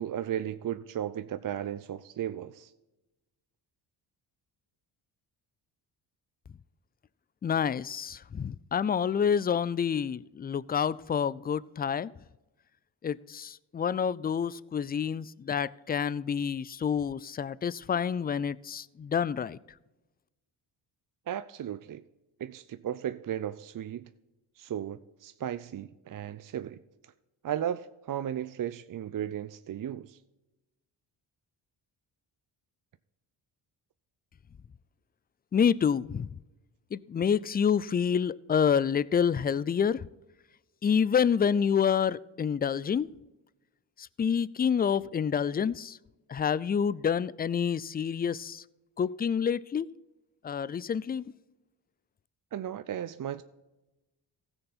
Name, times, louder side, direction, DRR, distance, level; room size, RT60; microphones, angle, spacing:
voice 1, 0.0-2.7 21.3-22.0 22.4-24.1 24.6-26.8 27.4-30.2 52.5-53.4, right 10 dB, 40° right, 0.6 m, -35 dB
voice 2, 7.4-12.1 13.0-19.6 35.5-36.3 36.9-40.0 40.8-43.1 44.0-46.0 46.3-48.6 49.0-49.9 50.4-51.2, left 7 dB, 20° left, 0.3 m, -28 dB
15.5 x 7.0 x 4.1 m
supercardioid pair, 55°, 50 cm